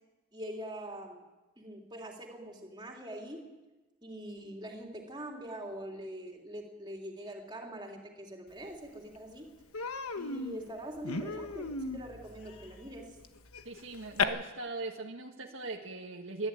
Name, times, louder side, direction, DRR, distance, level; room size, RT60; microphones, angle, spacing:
voice 1, 0.3-1.2 1.6-3.5 4.0-9.5 10.2-13.2, right 1 dB, 20° right, 0 dB, 3.2 m, -43 dB
Human voice, 8.7-8.8 9.1-9.3 9.7-14.2, left 5 dB, 85° left, 1.3 m, -36 dB
voice 2, 13.6-16.5, right 3 dB, 65° right, 1 dB, 1.7 m, -39 dB
22.0 x 13.5 x 9.1 m, 1.2 s
head